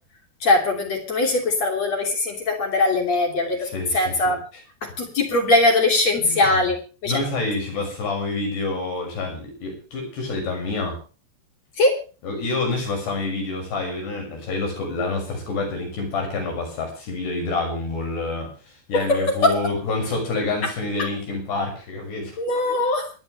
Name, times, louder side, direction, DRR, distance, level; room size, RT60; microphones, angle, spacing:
voice 1, 0.4-4.4 4.8-7.2 11.8-12.0 18.9-19.7 20.6-20.7 21.0-21.1 22.4-23.1, left 2 dB, 40° left, 3 dB, 3.8 m, -21 dB
voice 2, 3.6-4.4 6.2-6.7 7.1-11.0 12.2-18.5 18.9-22.4, left 3 dB, 60° left, 2 dB, 8.2 m, -27 dB
27.5 x 10.5 x 3.3 m, 0.35 s
omnidirectional pair, 5.6 m